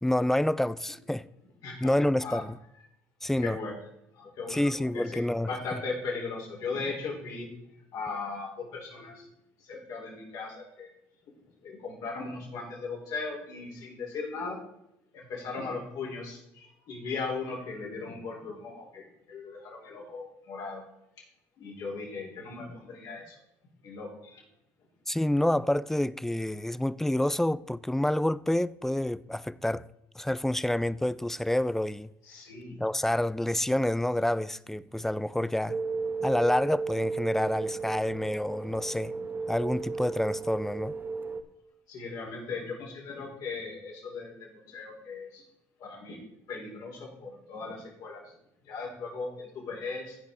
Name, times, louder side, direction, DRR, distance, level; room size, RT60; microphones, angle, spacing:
voice 1, 0.0-1.3 1.8-2.6 3.2-3.6 4.5-5.8 25.1-29.9 30.2-32.1 32.8-35.8 36.2-39.1 39.5-40.9, left 1 dB, 5° left, 0.3 m, -28 dB
voice 2, 1.6-2.4 3.4-3.8 4.1-7.5 7.9-9.3 9.6-10.9 11.6-14.6 15.1-20.9 21.6-23.4 23.8-24.4 32.2-32.8 41.9-45.4 45.8-46.2 46.5-48.3 48.6-50.2, left 4 dB, 65° left, 3.9 m, -38 dB
sound 1, 35.7-41.4, right 4 dB, 30° right, 0.9 m, -34 dB
15.5 x 5.3 x 3.8 m
supercardioid pair, 80°, 7 cm